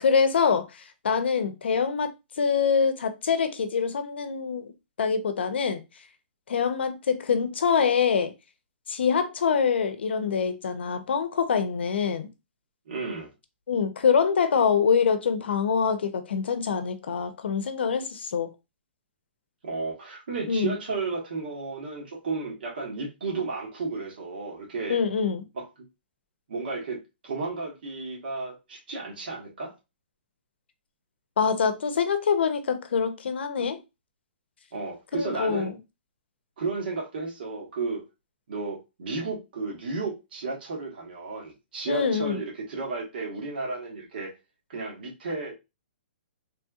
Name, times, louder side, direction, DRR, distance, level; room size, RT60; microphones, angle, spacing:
voice 1, 0.0-2.1 2.4-4.7 5.0-5.8 6.5-8.3 8.9-12.3 13.7-18.5 20.5-20.8 24.9-25.4 31.4-33.8 35.1-35.7 41.9-42.4, left 6 dB, 75° left, 0.6 m, -25 dB
voice 2, 12.9-13.3 19.6-25.0 25.5-25.7 26.5-29.7 34.7-35.7 36.6-38.0 38.5-44.3 44.7-45.5, right 3 dB, 60° right, 1.3 m, -33 dB
3.2 x 2.8 x 2.3 m
hypercardioid pair, 170°, 6 cm